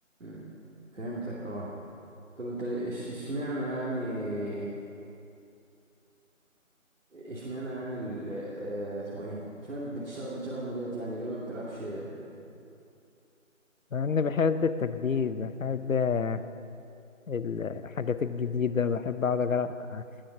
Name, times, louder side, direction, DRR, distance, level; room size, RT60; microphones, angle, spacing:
voice 1, 0.9-1.7 2.4-4.7 7.1-12.3, right 1 dB, 70° right, -7 dB, 2.7 m, -35 dB
voice 2, 13.9-16.4 17.3-20.0, left 5 dB, 75° left, 12 dB, 0.8 m, -28 dB
19.0 x 7.7 x 6.1 m, 2.6 s
figure-of-eight pair, 175°, 41 cm